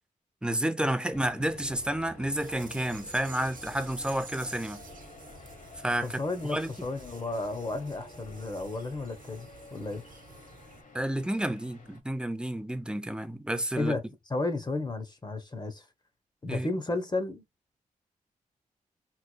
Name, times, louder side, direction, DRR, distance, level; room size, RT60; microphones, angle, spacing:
voice 1, 0.4-4.8 5.8-6.2 6.5-6.7 10.9-13.9 16.5-16.7, right 1 dB, 5° right, 0.6 m, -30 dB
sound 1, 1.1-12.0, left 2 dB, 65° left, 1.1 m, -50 dB
sound 2, 2.3-10.8, right 5 dB, 70° right, 1.0 m, -50 dB
voice 2, 6.0-10.0 13.8-14.0 14.3-15.8 16.4-17.4, left 2 dB, 30° left, 0.9 m, -33 dB
3.7 x 3.1 x 2.2 m
cardioid pair, 60°, 15 cm